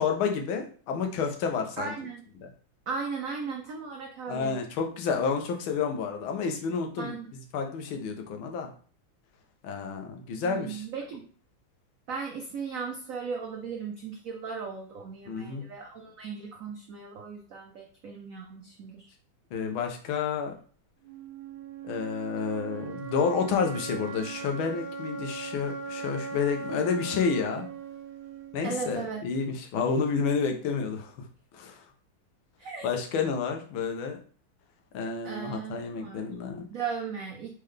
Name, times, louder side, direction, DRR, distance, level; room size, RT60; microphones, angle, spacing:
voice 1, 0.0-1.9 2.4-2.5 4.3-7.2 7.5-8.7 9.6-10.8 15.3-15.7 19.5-20.5 21.8-27.7 28.5-31.1 31.5-31.8 32.8-34.2 34.9-36.7, left 5 dB, 80° left, 4 dB, 1.6 m, -30 dB
voice 2, 1.8-2.2 2.9-4.6 7.0-7.3 10.4-11.2 12.1-19.1 28.6-29.2 32.6-32.9 35.2-36.3 36.7-37.5, right 5 dB, 90° right, 1 dB, 0.7 m, -37 dB
sound 1, 21.0-29.0, right 5 dB, 75° right, 1.3 m, -39 dB
4.2 x 3.8 x 3.3 m, 0.43 s
omnidirectional pair, 2.2 m